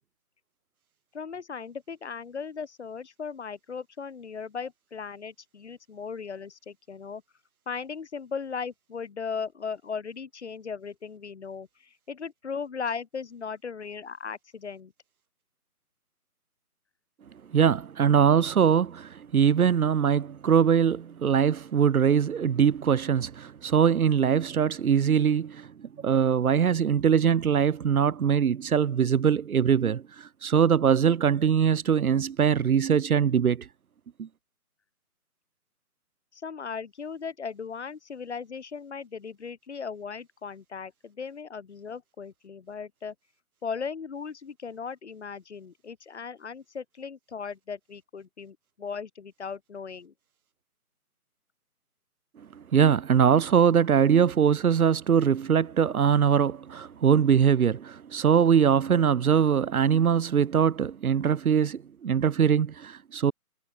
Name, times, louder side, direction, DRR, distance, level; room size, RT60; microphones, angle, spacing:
voice 1, 1.1-7.2 7.7-14.9 36.3-43.1 43.6-50.1, left 6 dB, 45° left, 1.2 m, -37 dB
voice 2, 17.5-33.7 34.2-34.3 52.6-63.3, right 7 dB, 65° right, 0.7 m, -22 dB
figure-of-eight pair, 155°, 46 cm